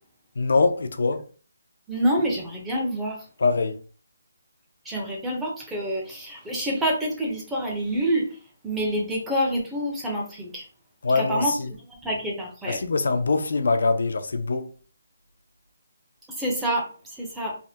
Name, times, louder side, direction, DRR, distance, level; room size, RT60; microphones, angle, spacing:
voice 1, 0.4-1.3 3.4-3.8 11.0-11.7 12.7-14.7, left 3 dB, 65° left, 0.4 m, -23 dB
voice 2, 1.9-3.3 4.8-8.4 8.6-10.6 11.2-11.5 12.0-12.8 16.4-17.6, equal, 5° right, 0.5 m, -27 dB
3.4 x 2.1 x 2.7 m
hypercardioid pair, 175°, 0 cm